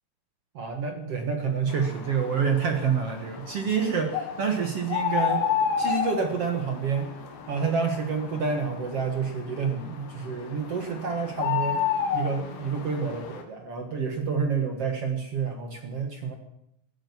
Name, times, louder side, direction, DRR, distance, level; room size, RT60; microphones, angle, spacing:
voice 1, 0.5-5.4 5.8-7.1 7.5-11.8 12.1-16.4, right 5 dB, 60° right, 4 dB, 1.7 m, -28 dB
sound 1, 1.7-13.4, left 7 dB, 90° left, 3.9 m, -32 dB
15.5 x 9.1 x 9.5 m, 0.80 s
omnidirectional pair, 4.8 m